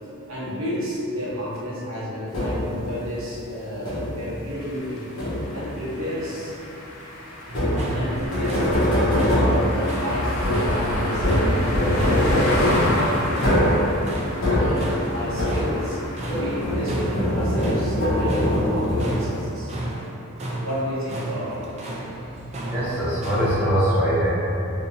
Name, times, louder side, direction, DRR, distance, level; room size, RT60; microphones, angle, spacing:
voice 1, 0.3-5.0 5.5-6.6 7.9-11.3 11.9-14.0 14.5-16.0 16.3-19.7 20.6-21.7, equal, 70° right, -8 dB, 1.0 m, -31 dB
sound 1, 2.3-2.9 3.9-4.3 5.2-5.7 7.5-16.0 16.3-19.4, left 1 dB, 65° left, 1.1 m, -23 dB
sound 2, 4.5-17.5, left 1 dB, 80° left, 0.6 m, -31 dB
sound 3, 7.5-23.7, right 1 dB, 30° right, 0.4 m, -34 dB
voice 2, 22.7-24.3, equal, 5° right, -14 dB, 0.8 m, -22 dB
3.6 x 2.8 x 2.7 m, 3.0 s
head